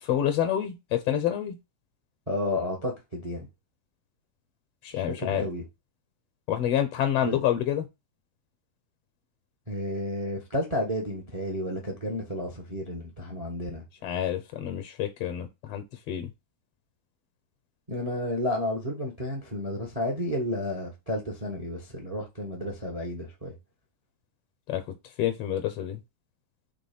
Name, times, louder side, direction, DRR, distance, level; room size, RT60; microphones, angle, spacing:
voice 1, 0.0-1.6 4.8-5.5 6.5-7.9 14.0-16.3 24.7-24.8 25.2-26.0, left 10 dB, 70° left, 1.5 m, -28 dB
voice 2, 2.3-3.5 4.9-5.6 7.2-7.4 9.7-13.8 17.9-23.5, left 1 dB, 40° right, 0.5 m, -31 dB
6.0 x 3.5 x 5.4 m
omnidirectional pair, 3.7 m